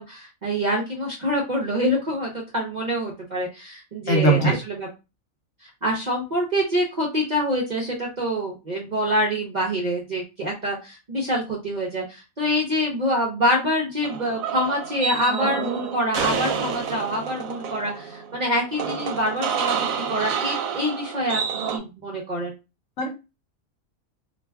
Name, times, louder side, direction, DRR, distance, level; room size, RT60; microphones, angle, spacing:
voice 1, 0.0-4.9 5.8-21.4 21.7-22.5, equal, 45° right, -2 dB, 0.6 m, -26 dB
voice 2, 4.1-4.5 23.0-23.2, right 2 dB, 65° left, 1 dB, 1.2 m, -19 dB
sound 1, 14.0-21.8, right 7 dB, 75° right, 1.0 m, -28 dB
2.5 x 2.2 x 3.4 m, 0.27 s
omnidirectional pair, 1.5 m